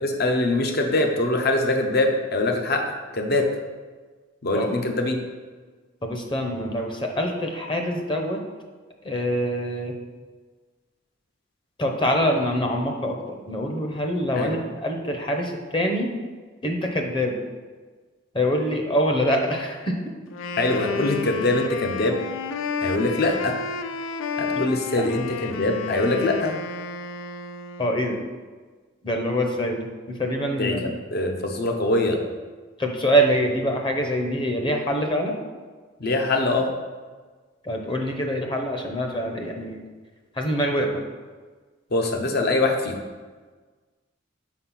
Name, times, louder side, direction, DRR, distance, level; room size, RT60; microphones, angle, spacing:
voice 1, 0.0-2.8 3.1-3.5 4.4-5.2 14.4-14.5 20.6-22.2 22.8-23.6 24.4-26.6 30.6-32.2 36.0-36.7 41.9-43.0, left 2 dB, 55° left, 3 dB, 0.8 m, -23 dB
voice 2, 6.0-8.4 9.0-10.0 11.8-16.1 16.6-17.4 18.3-20.1 27.8-28.2 29.0-30.9 32.8-35.4 37.6-39.8 40.3-41.0, equal, 25° left, 2 dB, 0.8 m, -25 dB
Wind instrument woodwind instrument, 20.3-28.0, left 5 dB, 80° left, 0.4 m, -31 dB
5.1 x 4.3 x 5.7 m, 1.4 s
head